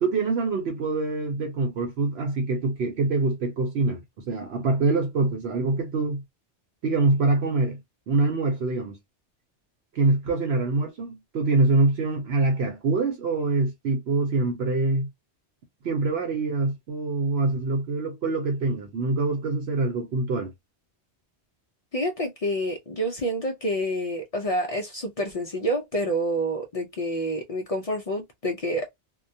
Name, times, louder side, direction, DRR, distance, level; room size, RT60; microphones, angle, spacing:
voice 1, 0.0-6.2 6.8-7.8 8.1-9.0 9.9-15.1 15.8-20.5, right 3 dB, 70° right, 0.9 m, -25 dB
voice 2, 21.9-28.9, equal, 65° left, 0.3 m, -28 dB
2.2 x 2.1 x 2.6 m
omnidirectional pair, 1.2 m